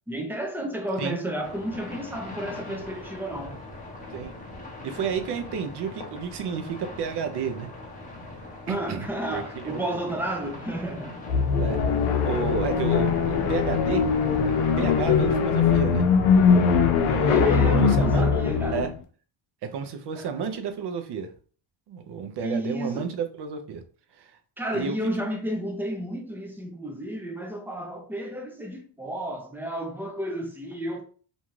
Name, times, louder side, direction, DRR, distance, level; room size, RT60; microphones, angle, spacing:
voice 1, 0.1-3.6 8.7-11.2 17.3-18.9 20.1-20.3 22.4-23.1 24.6-31.0, right 1 dB, 5° right, 0.3 m, -32 dB
sound 1, 1.4-15.7, left 2 dB, 15° left, 0.7 m, -41 dB
voice 2, 4.8-7.7 8.7-10.0 11.6-11.8 12.2-16.1 17.0-18.2 18.7-18.9 19.7-21.3 21.9-23.8 24.1-24.3 24.7-25.0, right 6 dB, 55° right, 0.6 m, -31 dB
sound 2, 11.3-18.9, left 5 dB, 80° left, 0.7 m, -21 dB
2.6 x 2.3 x 3.1 m
cardioid pair, 115°, 50 cm